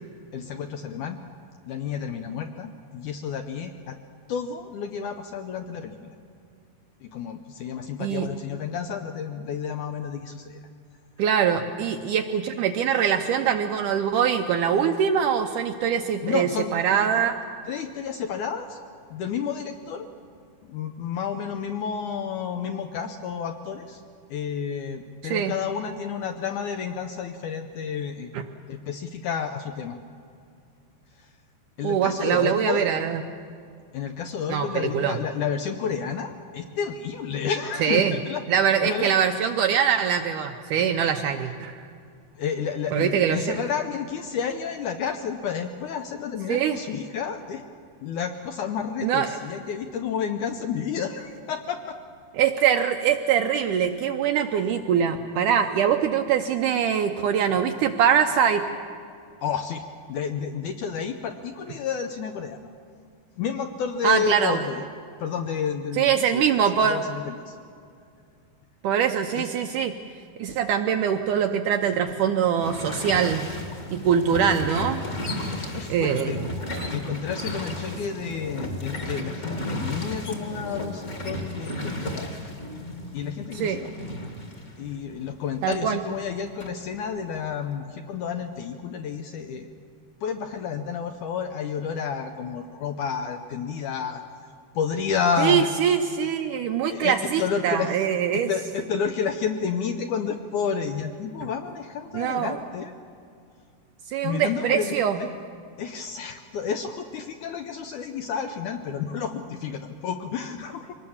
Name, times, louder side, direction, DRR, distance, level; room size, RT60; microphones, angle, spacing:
voice 1, 0.3-1.2 1.7-4.0 4.3-6.1 7.0-10.6 16.2-16.8 17.7-18.8 19.1-20.1 20.6-24.0 24.3-28.3 28.7-30.0 31.2-31.3 31.8-32.9 33.9-38.4 38.8-39.1 42.4-47.6 48.0-52.0 59.4-62.6 63.4-64.9 65.2-67.6 69.4-69.5 75.5-76.4 76.9-82.3 83.1-83.9 84.8-89.7 90.2-94.2 94.8-95.7 96.9-98.1 98.3-102.9 104.2-105.3 105.8-110.9, left 7 dB, 75° left, 6 dB, 1.9 m, -30 dB
voice 2, 11.2-17.3 25.2-25.6 28.3-28.4 31.8-33.2 34.5-35.2 37.8-38.2 38.5-41.9 42.9-43.6 46.5-46.8 49.0-49.3 52.4-58.6 64.0-64.6 65.9-67.0 68.8-69.9 70.4-73.5 73.9-75.0 75.9-76.4 76.8-76.9 83.5-83.8 85.6-86.0 95.4-98.5 102.1-102.6 104.1-105.2, right 8 dB, 75° right, 6 dB, 1.9 m, -23 dB
sound 1, 72.6-85.9 86.2-87.5, left 1 dB, 30° left, 1.5 m, -34 dB
24.0 x 19.5 x 7.2 m, 2.4 s
omnidirectional pair, 4.4 m